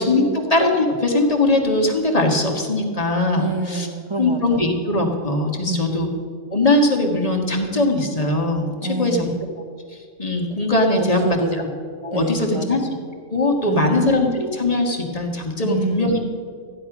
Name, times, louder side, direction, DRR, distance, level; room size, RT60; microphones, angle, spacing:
voice 1, 0.0-3.9 4.2-6.1 6.5-9.3 9.9-11.2 12.0-12.8 13.3-16.2, left 2 dB, 30° left, 1 dB, 1.6 m, -20 dB
voice 2, 3.3-4.8 5.7-6.2 8.8-9.4 10.9-11.7 12.1-12.9 13.7-14.1 15.6-16.2, right 3 dB, 25° right, 2 dB, 0.7 m, -28 dB
14.5 x 10.0 x 6.0 m, 2.1 s
omnidirectional pair, 1.3 m